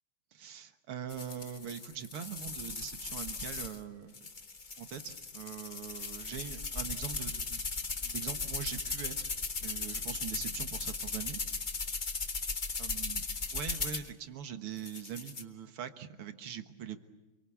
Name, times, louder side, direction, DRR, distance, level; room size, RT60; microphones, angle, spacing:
voice 1, 0.3-4.3 4.8-7.6 8.0-9.3 9.6-11.4 12.8-13.2 13.5-17.0, right 8 dB, 85° right, 8 dB, 2.3 m, -42 dB
sound 1, 1.1-3.8 4.1-14.1 14.8-15.4, left 4 dB, 30° left, 1.1 m, -37 dB
27.0 x 23.5 x 8.4 m, 1.1 s
omnidirectional pair, 2.4 m